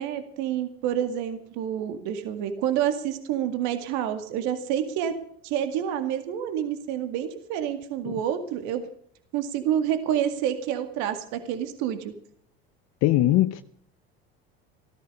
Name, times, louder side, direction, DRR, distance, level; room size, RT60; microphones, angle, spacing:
voice 1, 0.0-5.2 5.4-8.8 9.3-12.1, right 10 dB, 70° right, 2.1 m, -28 dB
voice 2, 13.0-13.6, left 15 dB, 60° left, 0.8 m, -21 dB
15.0 x 13.0 x 5.4 m
supercardioid pair, 85°, 30 cm